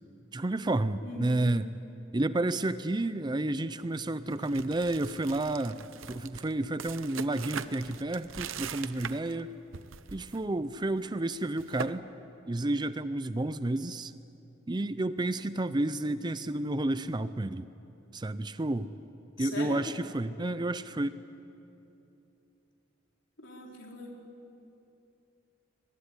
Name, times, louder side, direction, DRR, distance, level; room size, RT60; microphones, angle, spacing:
voice 1, 0.3-1.7 2.1-5.8 6.1-9.5 10.1-12.0 12.5-14.1 14.7-17.7 18.1-18.9 19.4-21.2, right 2 dB, 20° right, 13 dB, 0.5 m, -31 dB
voice 2, 1.0-1.4 19.4-19.8 23.4-24.1, left 2 dB, 65° left, 0 dB, 4.6 m, -40 dB
sound 1, 4.3-9.4 9.7-10.4 10.7-10.9 11.3-11.9, right 7 dB, 85° right, 0.9 m, -41 dB
23.0 x 21.0 x 9.8 m, 2.8 s
head